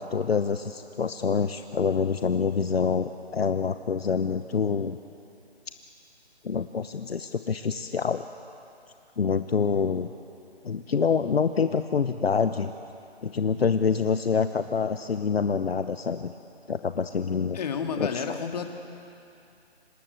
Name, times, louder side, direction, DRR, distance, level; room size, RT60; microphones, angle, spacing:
voice 1, 0.0-5.0 6.4-8.3 9.2-10.1 10.6-12.7 13.2-16.3 16.7-17.6 18.0-18.2, left 6 dB, 65° left, 9 dB, 1.0 m, -26 dB
voice 2, 17.5-18.7, left 6 dB, 40° left, 5 dB, 2.1 m, -30 dB
26.0 x 19.5 x 7.8 m, 2.6 s
figure-of-eight pair, 155°, 32 cm